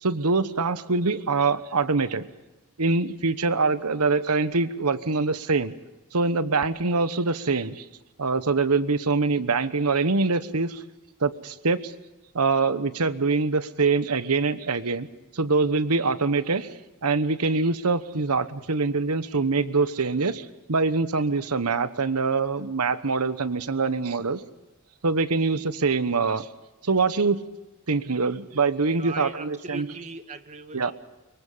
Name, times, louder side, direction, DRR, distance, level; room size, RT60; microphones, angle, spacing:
voice 1, 0.0-2.3 2.8-5.7 6.1-7.9 8.2-10.8 11.2-11.9 12.3-15.1 15.3-16.7 17.0-24.4 25.0-26.5 26.8-27.4 27.9-29.9 30.7-30.9, right 4 dB, 85° right, 13 dB, 1.2 m, -24 dB
voice 2, 28.9-30.9, right 3 dB, 30° right, 8 dB, 1.5 m, -39 dB
24.5 x 23.0 x 5.6 m, 1.1 s
head